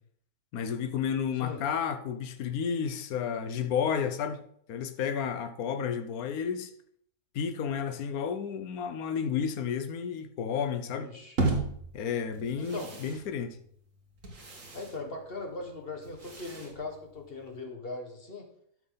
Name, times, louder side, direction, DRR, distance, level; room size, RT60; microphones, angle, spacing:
voice 1, 0.5-4.4 4.7-6.7 7.3-11.1 11.9-13.6, left 7 dB, 70° left, 1.3 m, -31 dB
voice 2, 10.9-11.4 12.6-13.0 14.7-18.5, left 3 dB, 35° left, 1.7 m, -40 dB
sound 1, 11.4-17.6, right 2 dB, 55° right, 2.1 m, -36 dB
12.5 x 5.9 x 3.9 m
omnidirectional pair, 1.7 m